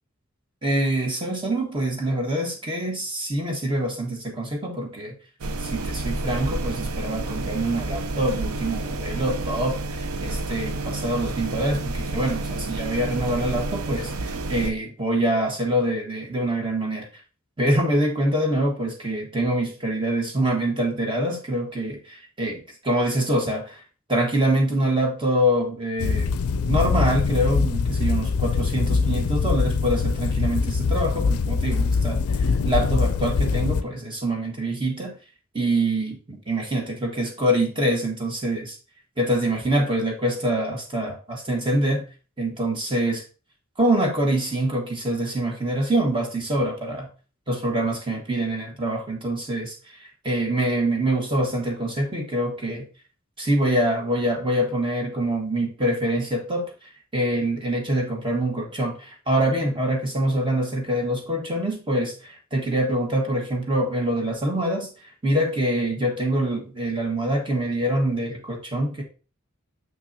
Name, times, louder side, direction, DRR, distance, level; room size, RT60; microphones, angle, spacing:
voice 1, 0.6-5.1 5.6-17.1 17.6-22.0 22.4-22.5 22.8-23.8 24.1-26.3 26.6-35.2 35.5-38.8 39.2-42.1 42.4-43.2 43.8-47.1 47.5-49.7 50.0-52.8 53.4-56.7 57.1-64.9 65.2-69.0, right 1 dB, 25° right, 1 dB, 1.4 m, -25 dB
sound 1, 5.4-14.7, right 2 dB, 80° right, 0.6 m, -30 dB
sound 2, 26.0-33.8, left 4 dB, 80° left, 0.4 m, -23 dB
6.3 x 5.9 x 2.7 m, 0.35 s
head